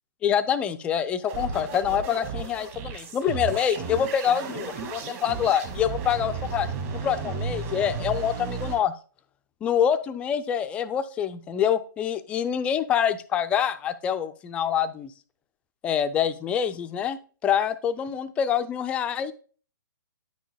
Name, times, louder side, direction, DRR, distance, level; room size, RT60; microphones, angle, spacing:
voice 1, 0.2-6.7 7.0-8.9 9.6-15.1 15.8-19.3, left 8 dB, 10° left, 11 dB, 0.3 m, -26 dB
sound 1, 1.3-8.8, right 5 dB, 40° right, 1.8 m, -34 dB
9.3 x 6.3 x 2.2 m, 0.39 s
hypercardioid pair, 140°, 11 cm